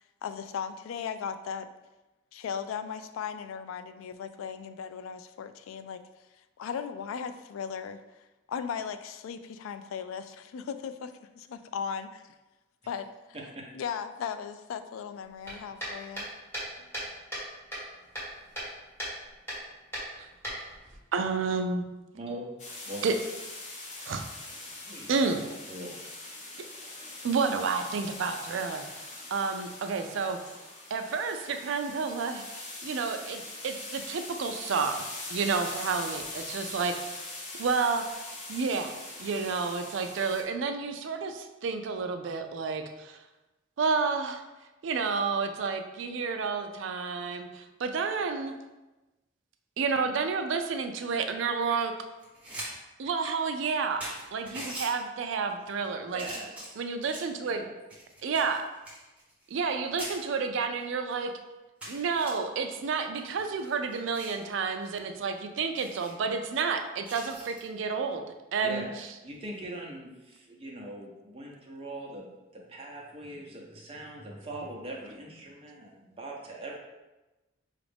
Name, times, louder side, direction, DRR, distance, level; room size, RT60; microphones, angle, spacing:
voice 1, 0.2-1.7 2.3-6.0 6.6-8.0 8.5-12.2 12.9-13.1 13.7-16.3, left 7 dB, 90° left, 11 dB, 0.3 m, -37 dB
sound 1, 15.4-17.5 17.7-18.7 19.0-19.2 19.5-19.6 19.9-21.0, right 1 dB, 10° left, 1.4 m, -36 dB
voice 2, 21.1-21.8 23.0-23.1 24.1-24.2 25.1-25.4 27.2-28.9 29.3-30.4 30.9-32.4 32.8-35.1 35.3-37.2 37.6-38.2 38.5-38.9 39.2-43.2 43.8-44.4 44.8-48.5 49.8-51.9 53.0-56.2 56.8-57.7 58.2-58.7 59.5-61.3 61.9-68.2 68.5-68.9, right 5 dB, 70° right, 7 dB, 0.4 m, -30 dB
voice 3, 22.1-22.5 22.9-23.1 24.8-26.1 56.1-56.8 57.4-57.7 68.6-68.9 69.2-76.7, right 1 dB, 30° right, -2 dB, 0.7 m, -41 dB
sound 2, 22.6-40.4, left 2 dB, 35° left, 0.7 m, -42 dB
sound 3, 52.2-52.7 53.1-53.2 53.7-53.8 54.0-54.9 55.6-55.9 56.2-57.4 57.9-59.7 60.0-60.2 60.8-60.9 61.2-61.3 61.8-62.3 63.2-64.4 64.8-65.0 65.3-65.4 65.7-66.1 67.0-67.6 69.3-69.6, right 1 dB, 5° right, 1.0 m, -42 dB
5.0 x 2.4 x 3.4 m, 1.1 s
head